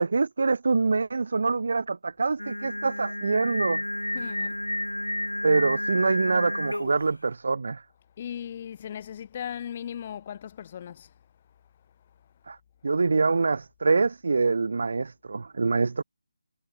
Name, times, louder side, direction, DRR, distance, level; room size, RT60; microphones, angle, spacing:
voice 1, 0.0-3.8 5.4-7.8 12.5-12.6 12.8-16.0, right 4 dB, 50° right, 0.9 m, -25 dB
Singing, 2.4-7.1, left 1 dB, 85° left, 3.9 m, -31 dB
voice 2, 4.0-4.6 8.2-11.1, left 9 dB, 30° left, 4.0 m, -37 dB
figure-of-eight pair, 155°, 0 cm